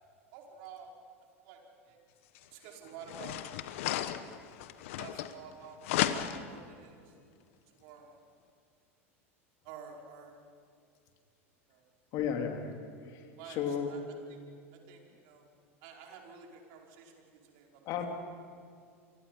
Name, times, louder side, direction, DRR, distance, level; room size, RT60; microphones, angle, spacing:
voice 1, 0.3-0.9 1.4-2.0 2.5-3.4 3.9-4.0 5.0-5.8 6.1-7.1 7.7-8.2 9.6-10.4 11.7-11.9 13.3-14.0 14.3-14.4 14.7-15.5 15.8-17.8, right 6 dB, 60° right, 1 dB, 5.0 m, -50 dB
sound 1, 2.3-2.4 3.0-5.5 5.8-6.6, left 12 dB, 70° left, 1.3 m, -34 dB
voice 2, 12.1-12.8 13.0-13.2 13.5-13.9 17.9-18.1, left 8 dB, 50° left, 3 dB, 3.2 m, -33 dB
29.5 x 24.0 x 5.6 m, 2.3 s
hypercardioid pair, 85°, 7 cm